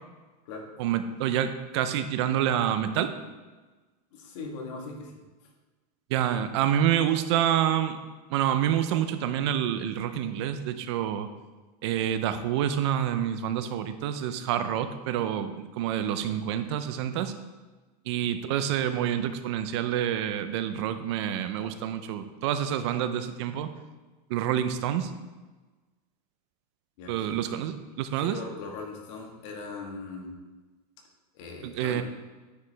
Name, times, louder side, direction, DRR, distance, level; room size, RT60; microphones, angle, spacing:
voice 1, 0.8-3.1 6.1-8.0 8.3-11.3 11.8-17.3 18.1-23.7 24.3-25.1 27.1-28.4 31.6-32.0, right 10 dB, 45° right, 10 dB, 0.4 m, -27 dB
voice 2, 4.1-5.5 27.0-27.3 28.2-30.3 31.3-32.0, left 4 dB, 50° left, 1 dB, 1.4 m, -40 dB
9.4 x 4.9 x 3.2 m, 1.2 s
supercardioid pair, 180°, 21 cm